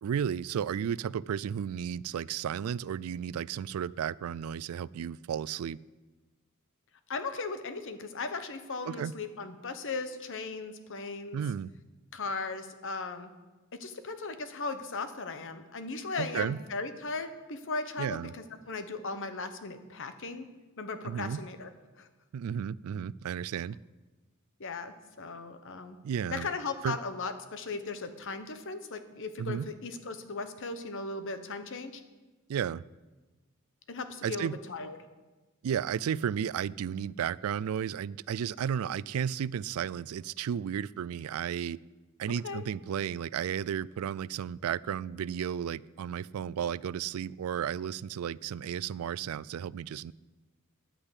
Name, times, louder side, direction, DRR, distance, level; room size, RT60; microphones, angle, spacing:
voice 1, 0.0-5.8 8.9-9.1 11.3-11.7 16.2-16.6 18.0-18.3 21.0-21.4 22.3-23.8 26.0-26.5 26.8-27.0 29.4-29.7 32.5-32.8 34.2-34.6 35.6-41.8 42.2-50.1, right 8 dB, 75° right, 21 dB, 0.3 m, -33 dB
voice 2, 7.1-11.4 12.1-13.3 13.8-20.5 20.8-21.7 22.0-22.1 24.6-26.0 26.3-32.0 33.9-35.0 42.4-42.6, left 3 dB, 60° left, 9 dB, 1.0 m, -37 dB
10.0 x 8.8 x 8.1 m, 1.2 s
head